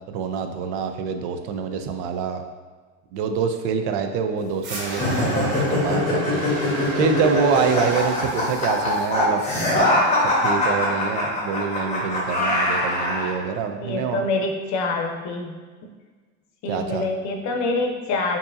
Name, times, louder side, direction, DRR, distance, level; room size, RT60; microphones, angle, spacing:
voice 1, 0.1-2.4 3.1-6.5 7.0-9.4 10.2-14.2 16.7-17.0, right 6 dB, 80° right, 6 dB, 0.5 m, -26 dB
sound 1, 4.6-9.6, right 1 dB, 45° right, 0.8 m, -34 dB
sound 2, 4.9-13.3, left 1 dB, 20° left, 1.1 m, -22 dB
voice 2, 13.8-15.5 16.6-18.4, left 3 dB, 60° left, 2 dB, 0.7 m, -25 dB
4.5 x 2.7 x 2.6 m, 1.4 s
cardioid pair, 125°, 32 cm